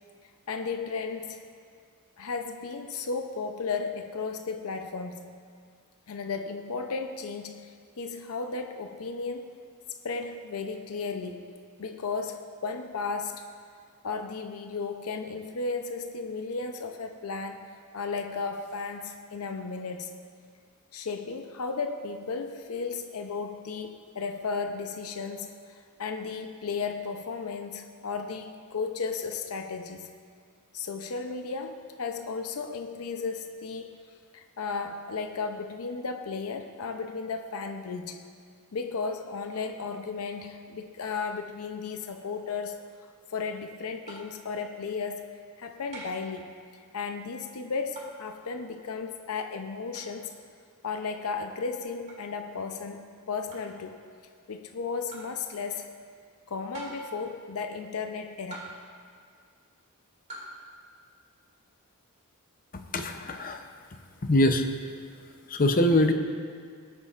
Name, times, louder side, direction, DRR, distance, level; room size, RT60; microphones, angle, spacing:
voice 1, 0.5-1.4 2.2-5.3 6.1-9.5 10.0-11.5 11.8-13.4 14.0-20.1 20.9-30.1 30.7-33.9 34.3-38.2 38.7-42.8 43.3-46.5 46.9-50.4 50.8-54.0 54.5-55.9 56.5-58.7, left 4 dB, 80° left, 6 dB, 0.6 m, -34 dB
sound 1, 44.1-44.4 45.9-46.3 48.0-48.2 49.9-50.1 52.1-52.3 53.5-53.8 55.1-55.4 56.7-57.2 58.5-59.0 60.3-60.6, right 2 dB, 35° right, 2.3 m, -43 dB
voice 2, 62.9-63.6 64.2-64.7 65.5-66.1, left 1 dB, 40° left, 6 dB, 0.7 m, -23 dB
20.5 x 8.2 x 2.5 m, 2.1 s
head